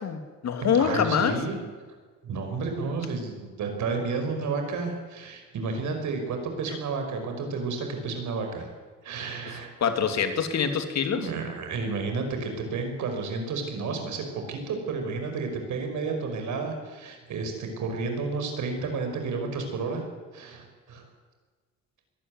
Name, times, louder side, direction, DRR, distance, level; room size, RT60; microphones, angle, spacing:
voice 1, 0.0-1.3 9.8-11.3, left 7 dB, 60° left, 7 dB, 2.6 m, -25 dB
voice 2, 0.6-1.6 2.2-8.7 9.0-9.7 11.1-20.0 20.3-21.0, right 4 dB, 75° right, 4 dB, 5.3 m, -31 dB
22.5 x 13.0 x 9.6 m, 1.5 s
cardioid pair, 90°, 30 cm